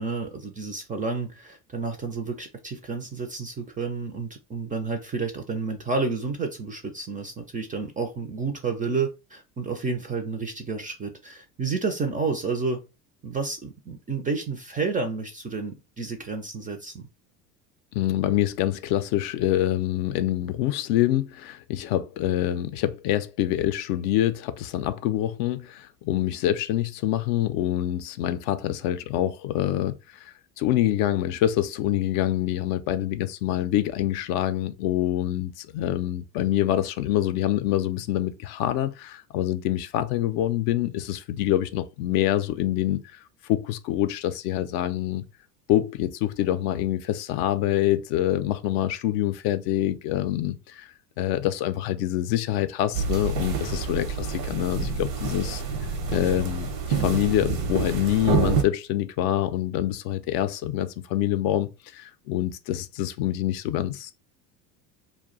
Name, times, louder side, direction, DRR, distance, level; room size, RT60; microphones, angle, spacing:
voice 1, 0.0-12.8 13.2-17.1, right 4 dB, 20° right, 0.4 m, -30 dB
voice 2, 17.9-43.2 43.5-45.2 45.7-55.6 56.1-64.1, left 13 dB, 55° left, 0.5 m, -26 dB
sound 1, 52.9-58.6, right 5 dB, 85° right, 0.9 m, -27 dB
2.3 x 2.1 x 3.7 m
hypercardioid pair, 75°, 50 cm